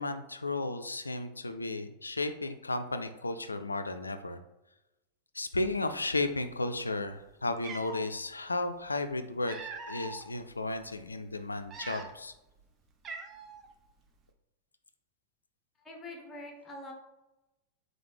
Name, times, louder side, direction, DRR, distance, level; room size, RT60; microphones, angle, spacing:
voice 1, 0.0-4.4 5.3-9.6 9.9-12.3, left 2 dB, 80° left, 9 dB, 0.3 m, -34 dB
Cat, 7.1-7.2 7.6-8.1 9.1-10.2 10.8-11.0 11.6-12.4 12.6-12.7 13.0-13.7, right 4 dB, 25° right, 0.5 m, -43 dB
voice 2, 15.8-16.9, left 1 dB, 15° left, 1 dB, 1.0 m, -44 dB
3.8 x 3.2 x 3.2 m, 0.95 s
figure-of-eight pair, 90°, 0 cm